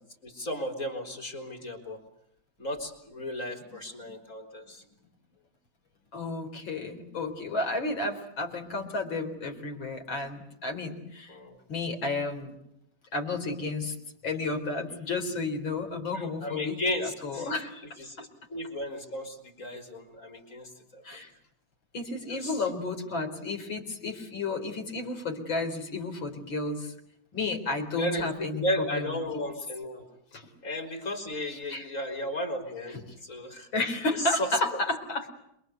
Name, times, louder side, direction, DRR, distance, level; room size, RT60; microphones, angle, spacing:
voice 1, 0.2-2.0 2.6-4.8 11.3-11.6 16.1-17.5 18.0-21.2 22.3-22.6 28.0-30.0 30.6-33.7 34.1-34.5, left 1 dB, 40° left, 5 dB, 4.7 m, -34 dB
voice 2, 6.1-11.4 11.7-12.6 13.1-14.0 14.2-17.9 21.0-21.3 21.9-26.9 27.3-29.2 30.3-30.5 31.7-31.9 32.9-33.0 33.7-35.3, left 3 dB, 80° left, 5 dB, 4.6 m, -32 dB
27.5 x 22.5 x 8.2 m, 0.80 s
omnidirectional pair, 2.1 m